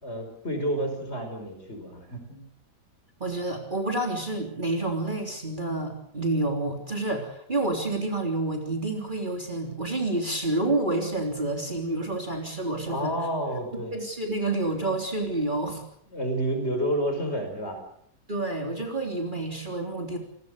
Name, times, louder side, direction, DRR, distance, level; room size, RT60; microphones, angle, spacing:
voice 1, 0.0-2.4 12.9-13.9 16.1-17.8, right 1 dB, 40° left, 5 dB, 5.5 m, -30 dB
voice 2, 3.2-13.1 13.9-15.8 18.3-20.2, right 2 dB, 30° right, 3 dB, 3.6 m, -29 dB
29.0 x 19.5 x 6.6 m, 0.69 s
omnidirectional pair, 1.8 m